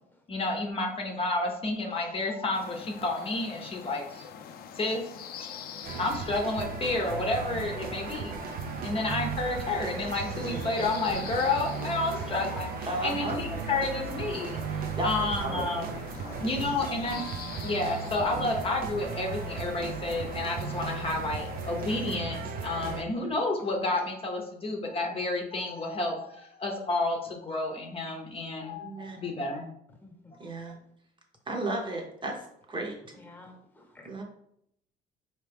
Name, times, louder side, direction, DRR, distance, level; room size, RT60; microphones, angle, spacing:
voice 1, 0.3-4.3 4.7-5.1 5.4-5.5 5.9-8.4 8.8-14.6 15.0-16.0 16.4-17.2 17.6-29.7 30.3-30.4, left 2 dB, 35° left, 1 dB, 0.8 m, -30 dB
sound 1, 2.5-22.1, left 7 dB, 65° left, 0.5 m, -45 dB
sound 2, 5.8-23.0, right 5 dB, 60° right, 0.6 m, -36 dB
voice 2, 10.5-10.8 12.9-13.4 15.0-15.9 16.2-16.7 28.8-29.2 30.4-30.8 31.5-33.0 34.0-34.2, right 2 dB, 30° right, 0 dB, 0.9 m, -35 dB
voice 3, 30.0-30.4 33.1-34.1, left 2 dB, 10° left, 1 dB, 1.1 m, -51 dB
4.4 x 3.0 x 3.4 m, 0.73 s
cardioid pair, 110°, 17 cm